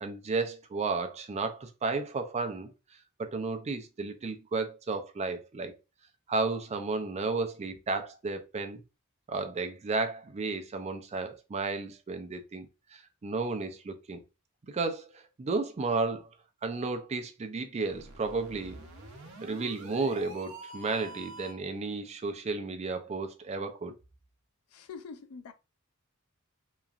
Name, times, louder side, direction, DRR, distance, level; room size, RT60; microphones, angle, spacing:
voice 1, 0.0-2.7 3.2-5.8 6.3-8.8 9.3-14.2 14.7-16.3 16.6-18.8 19.4-23.9, right 3 dB, 30° right, 0.4 m, -33 dB
sound 1, 17.8-21.7, right 2 dB, 75° right, 0.7 m, -46 dB
voice 2, 24.7-25.5, left 5 dB, 90° left, 0.4 m, -44 dB
3.0 x 2.4 x 2.4 m
head